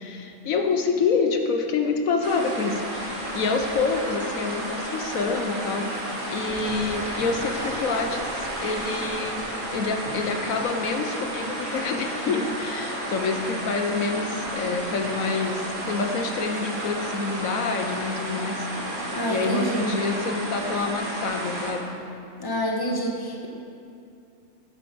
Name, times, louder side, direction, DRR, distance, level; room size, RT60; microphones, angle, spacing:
voice 1, 0.0-5.9 6.3-9.5 9.7-18.7 19.3-22.0, left 4 dB, 75° left, 5 dB, 1.2 m, -27 dB
sound 1, 2.2-21.7, right 1 dB, 35° right, 1.8 m, -32 dB
voice 2, 19.1-19.9 22.4-23.5, equal, 15° left, 1 dB, 1.2 m, -27 dB
10.5 x 9.2 x 6.1 m, 2.5 s
omnidirectional pair, 1.5 m